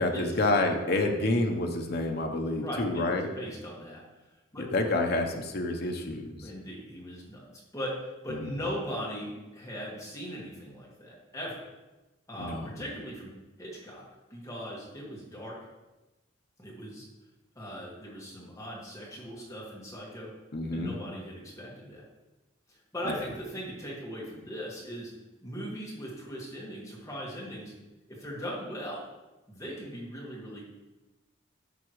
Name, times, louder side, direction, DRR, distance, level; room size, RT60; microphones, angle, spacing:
voice 1, 0.0-3.3 4.6-6.5 8.3-8.5 12.4-12.7 20.5-20.9 23.1-23.3, left 2 dB, 50° left, 3 dB, 0.8 m, -28 dB
voice 2, 2.6-4.0 4.5-4.6 6.4-7.4 7.7-11.6 12.3-14.0 14.3-15.6 16.6-17.1 17.5-20.3 20.7-22.0 22.7-25.1 25.4-27.7 28.1-29.1 29.5-30.6, equal, 15° left, -4 dB, 1.7 m, -39 dB
11.0 x 6.0 x 3.1 m, 1.1 s
head